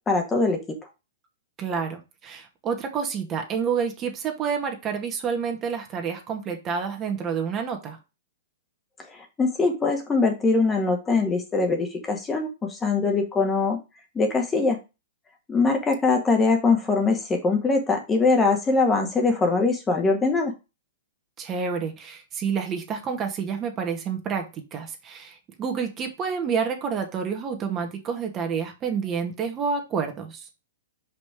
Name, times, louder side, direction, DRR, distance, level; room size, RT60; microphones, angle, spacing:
voice 1, 0.1-0.8 9.1-13.8 14.2-14.8 15.5-20.5, left 3 dB, 15° left, 3 dB, 1.8 m, -22 dB
voice 2, 1.6-8.0 21.4-30.5, right 6 dB, 30° right, 3 dB, 2.0 m, -29 dB
5.4 x 5.2 x 5.0 m, 0.26 s
hypercardioid pair, 115°, 0 cm